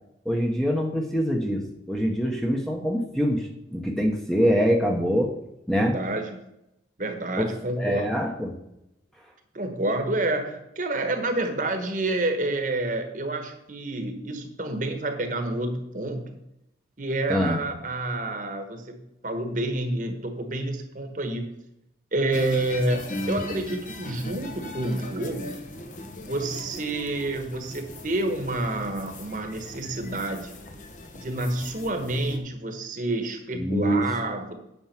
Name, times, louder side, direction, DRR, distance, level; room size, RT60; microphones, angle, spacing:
voice 1, 0.2-1.6 1.9-5.3 5.7-5.9 7.4-7.5 7.8-8.5 17.3-17.6 33.5-34.0, equal, ahead, 1 dB, 1.0 m, -24 dB
voice 2, 5.8-6.4 7.0-8.1 9.5-16.4 17.0-21.5 22.1-25.6 26.2-30.6 31.1-34.5, right 2 dB, 45° right, 6 dB, 1.3 m, -29 dB
sound 1, 22.3-32.4, left 1 dB, 40° left, 1.1 m, -38 dB
9.1 x 6.2 x 5.9 m, 0.84 s
head